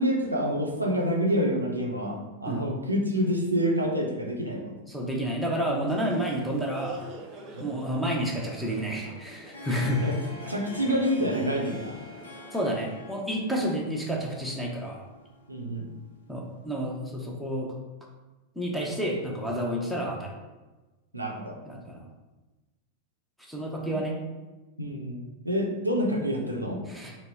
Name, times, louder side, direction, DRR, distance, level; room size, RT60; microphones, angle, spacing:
voice 1, 0.0-4.8 7.5-7.7 10.0-10.2 10.5-12.0 15.5-15.9 21.1-21.6 23.9-24.0 24.8-26.8, equal, 85° right, 0 dB, 0.6 m, -27 dB
voice 2, 4.9-7.1 7.6-10.0 12.5-15.0 16.3-17.7 18.6-20.3 21.7-22.1 23.4-24.2 26.9-27.2, equal, 5° left, -2 dB, 0.6 m, -30 dB
sound 1, 5.9-12.8, right 2 dB, 35° right, 0.7 m, -45 dB
Harp, 9.2-17.0, left 2 dB, 70° left, 0.5 m, -46 dB
3.9 x 2.0 x 3.4 m, 1.1 s
figure-of-eight pair, 90°, 0 cm